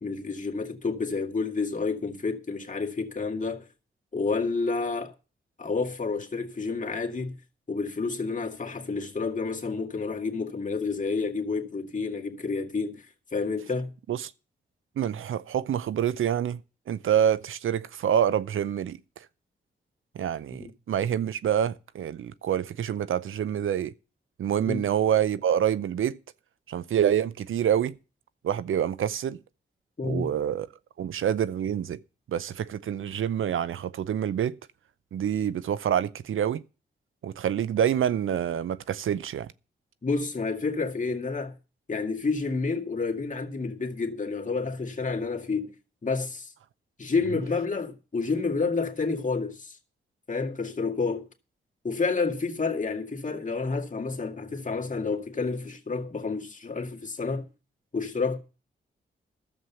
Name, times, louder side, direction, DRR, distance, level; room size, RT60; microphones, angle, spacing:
voice 1, 0.0-3.6 4.1-5.1 5.6-7.4 7.7-13.1 13.3-13.9 20.5-20.7 24.7-24.8 30.0-30.3 40.0-41.5 41.9-45.7 46.0-46.5 47.0-49.8 50.3-51.3 51.8-57.5 57.9-58.4, left 4 dB, 40° left, 2.0 m, -29 dB
voice 2, 15.0-16.6 16.9-19.0 20.1-23.9 24.4-26.2 26.7-27.9 28.4-29.4 30.0-30.7 31.0-32.0 32.3-34.6 35.1-36.6 37.2-39.5, right 9 dB, 80° right, 0.6 m, -27 dB
11.5 x 7.4 x 6.9 m
cardioid pair, 55°, 21 cm